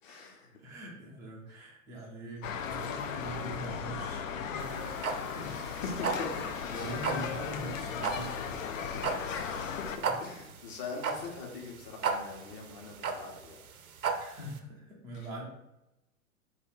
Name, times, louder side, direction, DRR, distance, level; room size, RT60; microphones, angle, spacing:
voice 1, 0.0-0.6 5.4-6.4 6.7-6.9 9.2-13.6 15.1-15.5, left 4 dB, 40° left, 0 dB, 1.1 m, -42 dB
voice 2, 0.6-5.5 6.3-8.9 10.0-10.1 14.2-15.5, right 1 dB, 10° right, -2 dB, 0.3 m, -43 dB
sound 1, 2.4-10.0, left 7 dB, 65° left, 0.5 m, -37 dB
sound 2, 4.6-14.6, right 5 dB, 75° right, 0.6 m, -35 dB
3.7 x 2.7 x 3.8 m, 0.92 s
figure-of-eight pair, 95°, 43 cm